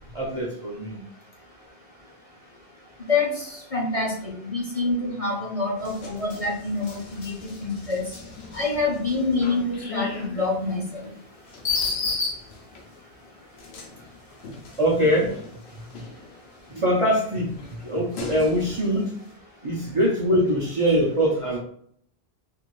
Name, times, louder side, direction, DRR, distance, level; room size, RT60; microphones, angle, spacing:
voice 1, 0.1-1.0 14.8-15.3 16.7-17.5 17.8-19.1 19.6-21.6, equal, 40° right, -5 dB, 0.6 m, -23 dB
voice 2, 3.1-8.0 8.5-10.9, left 3 dB, 40° left, -3 dB, 0.7 m, -26 dB
sound 1, 5.8-12.9 13.6-16.6 17.1-19.1, left 4 dB, 80° left, 0.9 m, -35 dB
2.6 x 2.5 x 3.0 m, 0.63 s
omnidirectional pair, 1.1 m